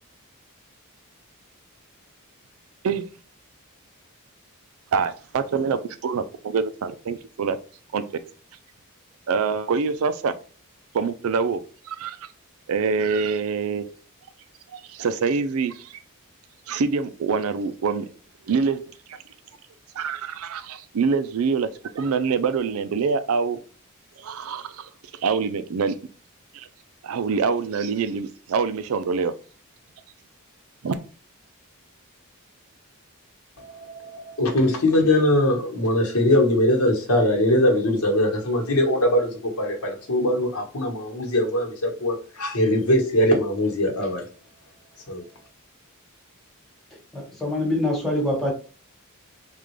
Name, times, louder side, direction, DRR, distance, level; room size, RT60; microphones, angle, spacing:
voice 1, 4.9-7.6 7.9-8.0 9.3-10.3 10.9-12.2 12.7-13.8 14.7-16.0 16.7-18.0 18.4-18.8 19.1-19.2 20.0-21.7 21.9-23.6 24.2-24.9 25.2-26.0 26.5-26.7 27.0-29.3 30.8-31.0, right 5 dB, 65° right, 0.4 m, -25 dB
voice 2, 33.6-44.3 45.1-45.2, left 1 dB, 75° left, 1.2 m, -21 dB
voice 3, 47.1-48.5, left 1 dB, ahead, 1.2 m, -24 dB
3.6 x 2.4 x 3.1 m
head